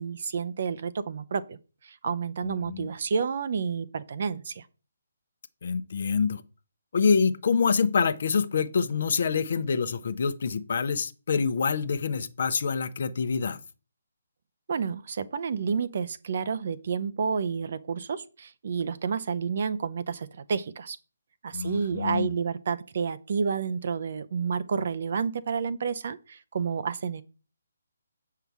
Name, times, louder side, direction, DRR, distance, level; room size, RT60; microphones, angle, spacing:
voice 1, 0.0-4.7 14.7-21.0 21.4-27.2, right 6 dB, 45° right, 0.6 m, -30 dB
voice 2, 2.4-2.9 5.6-6.4 6.9-13.6 21.5-22.3, left 5 dB, 50° left, 0.7 m, -26 dB
7.8 x 5.7 x 4.7 m
figure-of-eight pair, 140°, 0 cm